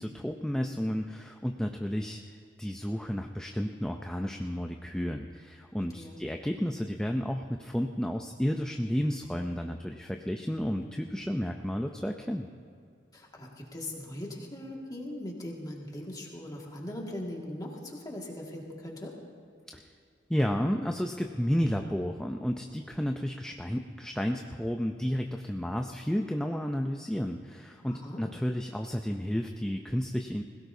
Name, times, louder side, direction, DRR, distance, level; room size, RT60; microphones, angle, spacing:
voice 1, 0.0-12.5 19.7-19.9 20.3-30.4, equal, 5° left, 3 dB, 0.4 m, -32 dB
voice 2, 13.1-19.2 27.9-28.2, left 1 dB, 20° left, -1 dB, 1.9 m, -40 dB
21.0 x 17.0 x 2.7 m, 2.3 s
head